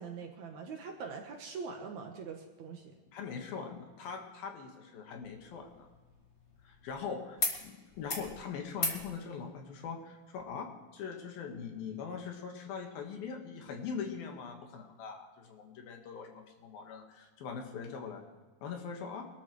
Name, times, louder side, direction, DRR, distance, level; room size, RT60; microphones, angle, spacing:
voice 1, 0.0-2.9, right 5 dB, 65° right, 2 dB, 2.2 m, -43 dB
voice 2, 3.1-5.9 6.6-18.2 18.6-19.2, left 6 dB, 75° left, 2 dB, 3.4 m, -42 dB
sound 1, 5.2-7.0 7.4-7.6 7.9-8.3 8.7-9.0 10.4-10.5, left 2 dB, 55° left, 0.5 m, -37 dB
22.0 x 13.0 x 3.2 m, 1.3 s
omnidirectional pair, 4.3 m